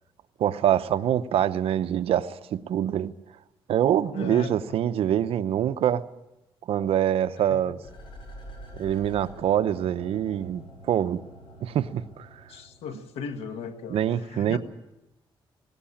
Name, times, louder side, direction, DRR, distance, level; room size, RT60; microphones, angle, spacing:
voice 1, 0.4-3.1 3.7-6.0 6.7-7.8 8.7-11.2 11.6-12.3 13.9-14.6, right 10 dB, 75° right, 12 dB, 0.8 m, -25 dB
voice 2, 4.1-4.6 7.5-7.6 12.5-14.6, left 6 dB, 90° left, 7 dB, 1.7 m, -37 dB
sound 1, 7.8-13.0 13.4-13.5, equal, 60° left, 7.1 m, -46 dB
18.5 x 17.5 x 8.6 m, 0.96 s
cardioid pair, 105°, 10 cm